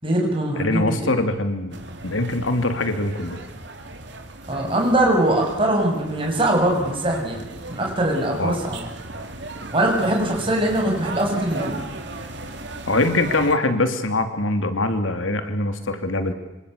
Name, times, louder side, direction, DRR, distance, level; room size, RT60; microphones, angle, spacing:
voice 1, 0.0-1.2 4.5-8.8 9.7-11.8, right 1 dB, 25° right, 0 dB, 7.9 m, -22 dB
voice 2, 0.5-1.8 2.0-3.4 8.4-8.6 12.9-16.3, left 2 dB, 85° left, 8 dB, 3.1 m, -23 dB
sound 1, 1.7-13.5, right 2 dB, 60° right, 3.9 m, -37 dB
27.0 x 26.0 x 8.4 m, 1.1 s
head